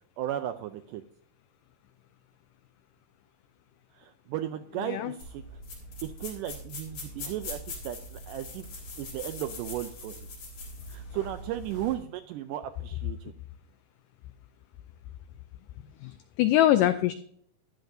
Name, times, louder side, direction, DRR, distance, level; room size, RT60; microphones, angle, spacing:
voice 1, 0.2-1.0 3.9-5.4 6.0-8.7 9.0-10.3 10.9-13.3, right 12 dB, 90° right, 9 dB, 1.8 m, -35 dB
voice 2, 4.8-5.1 16.0-17.1, left 13 dB, 85° left, 11 dB, 1.9 m, -24 dB
sound 1, 5.2-12.0, left 2 dB, 60° left, 5.4 m, -42 dB
14.0 x 11.5 x 2.6 m, 0.64 s
omnidirectional pair, 4.3 m